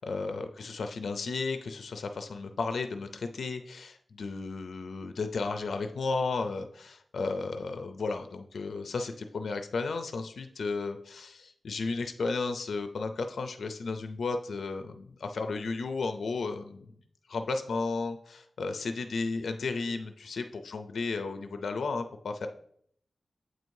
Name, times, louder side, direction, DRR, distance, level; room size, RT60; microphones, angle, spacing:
voice 1, 0.0-16.9 17.3-22.5, left 4 dB, 90° left, 7 dB, 0.4 m, -34 dB
7.7 x 4.6 x 2.6 m, 0.66 s
wide cardioid pair, 105°, 0 cm